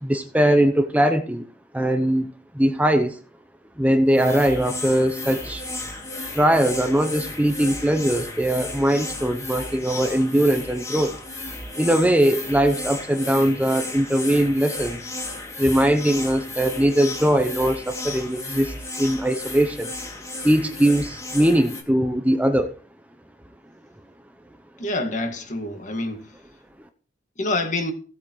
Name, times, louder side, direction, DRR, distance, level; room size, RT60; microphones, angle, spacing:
voice 1, 0.0-1.5 1.7-2.3 2.5-3.2 3.8-5.6 6.3-11.2 11.8-15.0 15.6-19.9 20.4-22.7, right 1 dB, 10° right, 0.7 m, -21 dB
sound 1, 4.1-21.8, left 2 dB, 20° left, 2.5 m, -34 dB
voice 2, 24.8-26.3 27.4-27.9, left 2 dB, 40° left, 2.0 m, -26 dB
16.0 x 8.4 x 3.1 m
head